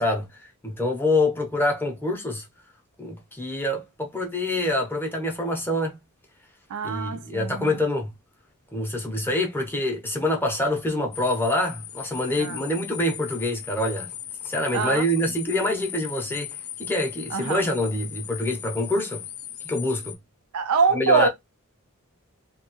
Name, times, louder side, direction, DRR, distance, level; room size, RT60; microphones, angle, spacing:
voice 1, 0.0-2.4 3.0-6.0 6.8-8.1 8.7-14.1 14.4-19.2 19.6-20.2 20.9-21.3, left 1 dB, 10° left, 0.5 m, -26 dB
voice 2, 6.7-7.8 12.4-12.6 14.7-15.0 17.3-17.6 20.5-21.3, right 5 dB, 80° right, 0.4 m, -24 dB
sound 1, 11.1-20.2, left 11 dB, 75° left, 0.4 m, -38 dB
2.2 x 2.1 x 2.9 m
head